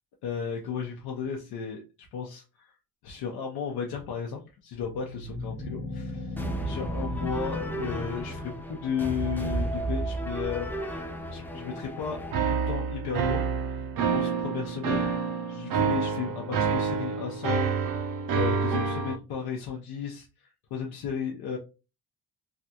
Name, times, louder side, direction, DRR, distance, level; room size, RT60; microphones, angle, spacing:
voice 1, 0.2-1.8 2.1-2.7 3.0-10.8 11.3-15.1 15.5-17.9 18.3-21.6, left 6 dB, 75° left, 0 dB, 0.7 m, -34 dB
sound 1, 4.7-9.1, left 1 dB, 40° left, 1.0 m, -37 dB
sound 2, 6.4-12.3, right 1 dB, 5° left, 0.4 m, -33 dB
sound 3, 12.3-19.2, right 5 dB, 60° right, 0.6 m, -28 dB
3.3 x 2.3 x 2.7 m, 0.31 s
cardioid pair, 90°, 38 cm